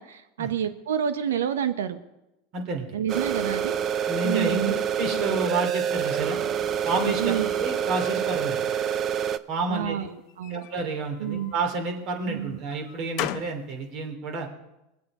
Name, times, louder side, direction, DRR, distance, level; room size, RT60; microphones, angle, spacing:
voice 1, 0.0-2.0 2.9-3.8 4.2-4.7 7.2-7.5 9.7-10.6 11.2-11.5 12.3-12.6, right 9 dB, 90° right, 10 dB, 1.0 m, -29 dB
voice 2, 2.5-2.9 4.1-6.4 6.8-8.6 9.5-10.1 10.5-14.5, right 3 dB, 50° right, 4 dB, 3.1 m, -30 dB
sound 1, 3.1-9.4, right 8 dB, 35° right, 0.5 m, -27 dB
sound 2, 6.2-8.1 8.6-9.3 10.3-11.8 12.3-13.7, left 13 dB, 55° left, 0.7 m, -39 dB
22.5 x 7.8 x 4.9 m, 0.94 s
hypercardioid pair, 110°, 0 cm